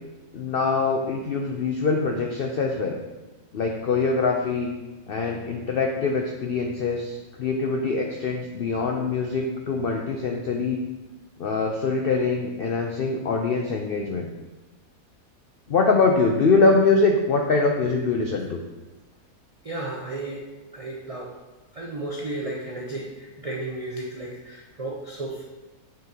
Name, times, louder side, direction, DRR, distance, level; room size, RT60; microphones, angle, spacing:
voice 1, 0.3-3.0 3.5-4.7 5.1-10.8 11.4-14.3 15.7-18.6, left 4 dB, 85° left, 2 dB, 0.5 m, -23 dB
voice 2, 19.6-20.5 20.7-21.4 21.7-25.4, right 2 dB, 65° right, -2 dB, 0.3 m, -33 dB
6.8 x 6.5 x 2.8 m, 1.1 s
omnidirectional pair, 1.7 m